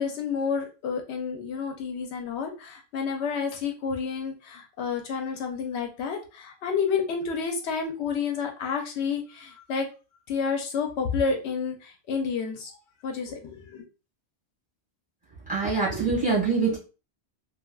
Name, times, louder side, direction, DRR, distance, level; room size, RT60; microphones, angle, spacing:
voice 1, 0.0-9.9 10.3-12.8 13.0-13.8, left 5 dB, 75° left, 4 dB, 0.8 m, -30 dB
voice 2, 15.5-16.8, right 4 dB, 5° right, -4 dB, 1.5 m, -24 dB
3.3 x 2.3 x 2.2 m, 0.33 s
omnidirectional pair, 1.1 m